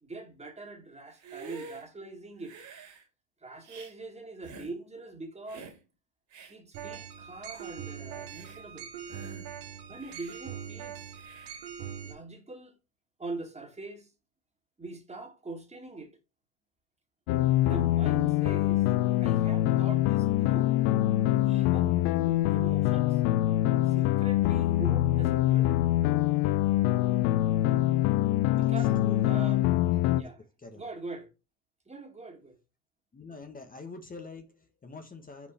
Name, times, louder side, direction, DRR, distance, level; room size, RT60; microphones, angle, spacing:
voice 1, 0.0-2.5 3.4-5.7 6.5-8.9 9.9-11.1 12.0-12.8 13.2-14.1 14.8-16.1 17.6-18.8 19.2-20.8 21.4-23.2 23.9-25.7 28.5-29.0 29.3-29.6 30.1-30.4 30.7-31.3 31.9-32.6, right 3 dB, 15° right, 2.3 m, -43 dB
Hiss, 1.1-1.8 2.4-3.0 3.6-3.9 4.4-4.7 5.5-5.8 6.3-6.5 7.1-7.2 7.5-7.7 8.2-8.6 9.1-9.5 10.0-10.4 11.1-11.6, right 4 dB, 40° right, 2.9 m, -48 dB
sound 1, 6.7-12.1, right 8 dB, 60° right, 1.9 m, -42 dB
sound 2, 17.3-30.2, left 15 dB, 65° left, 0.6 m, -24 dB
voice 2, 28.5-29.8 30.2-30.3 30.6-30.9 33.1-35.5, left 4 dB, 20° left, 1.2 m, -46 dB
5.9 x 4.6 x 4.2 m
hypercardioid pair, 90°, 45 cm